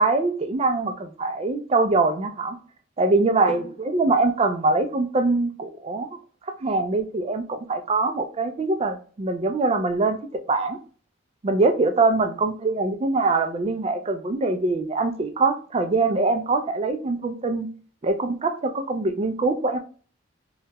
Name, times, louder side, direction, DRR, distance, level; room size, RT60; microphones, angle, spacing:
voice 1, 0.0-2.6 3.0-6.1 6.6-10.2 10.5-10.8 11.4-17.7 18.0-19.8, right 3 dB, 30° right, 8 dB, 0.3 m, -23 dB
2.8 x 2.2 x 2.8 m, 0.41 s
head